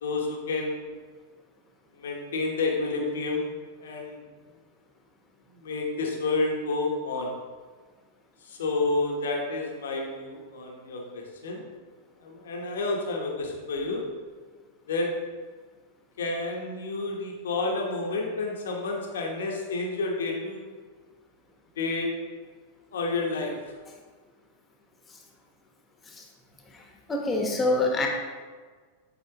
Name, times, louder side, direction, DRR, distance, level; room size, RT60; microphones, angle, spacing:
voice 1, 0.0-0.9 2.0-3.5 3.8-4.2 5.5-7.3 8.4-11.7 12.2-14.0 14.9-15.1 16.2-20.8 21.8-22.1 22.9-23.5, left 3 dB, 75° left, 0 dB, 1.0 m, -30 dB
voice 2, 27.1-28.1, left 2 dB, 20° left, 1 dB, 1.2 m, -24 dB
7.9 x 4.0 x 2.9 m, 1.5 s
hypercardioid pair, 100°, 0 cm